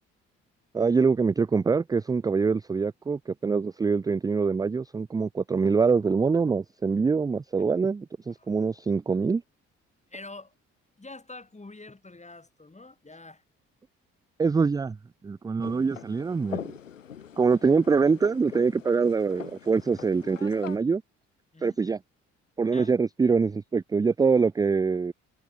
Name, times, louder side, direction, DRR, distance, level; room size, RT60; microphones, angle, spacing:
voice 1, 0.7-9.4 14.4-15.0 15.2-16.6 17.4-21.0 21.6-22.0 22.6-25.1, right 5 dB, 10° right, 0.4 m, -24 dB
voice 2, 10.1-10.5 11.0-13.4 21.5-21.8 22.7-23.0, left 2 dB, 20° left, 7.5 m, -45 dB
sound 1, 15.6-20.8, left 8 dB, 85° left, 1.3 m, -42 dB
figure-of-eight pair, 45°, 37 cm